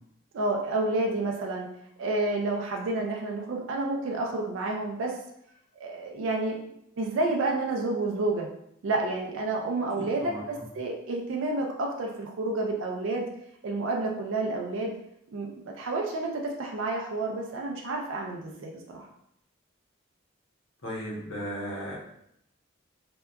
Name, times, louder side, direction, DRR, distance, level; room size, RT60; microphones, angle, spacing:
voice 1, 0.3-1.7 2.0-5.1 5.8-8.5 8.8-13.2 13.6-14.9 15.3-19.1, right 2 dB, 65° right, 0 dB, 0.4 m, -30 dB
voice 2, 9.9-10.4 20.8-22.0, equal, 65° left, -4 dB, 0.8 m, -36 dB
2.7 x 2.2 x 2.2 m, 0.76 s
head